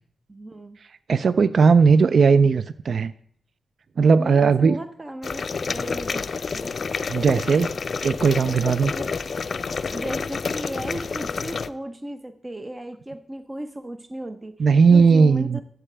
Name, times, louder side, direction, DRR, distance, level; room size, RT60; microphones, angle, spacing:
voice 1, 0.3-0.8 4.1-6.2 6.5-6.8 9.0-9.1 9.8-15.6, right 1 dB, 25° right, 9 dB, 0.7 m, -36 dB
voice 2, 1.1-3.1 4.0-4.8 7.1-7.7 8.0-8.9 14.6-15.6, right 5 dB, 70° right, 15 dB, 0.3 m, -17 dB
sound 1, 5.2-11.7, left 5 dB, 60° left, 0.4 m, -29 dB
13.5 x 7.7 x 3.3 m, 0.63 s
cardioid pair, 80°, 0 cm